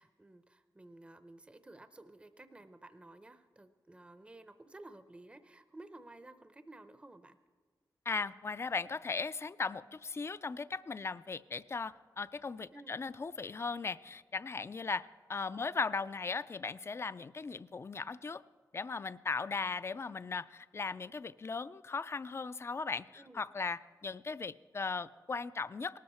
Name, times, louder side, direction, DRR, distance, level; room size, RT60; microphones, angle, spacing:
voice 1, 0.0-7.4 12.7-13.0 15.5-15.7 23.2-23.4, right 2 dB, 15° right, 10 dB, 0.6 m, -54 dB
voice 2, 8.1-18.4 18.7-26.0, left 4 dB, 35° left, 16 dB, 0.3 m, -38 dB
19.0 x 13.5 x 4.3 m, 1.4 s
wide cardioid pair, 115°, 8 cm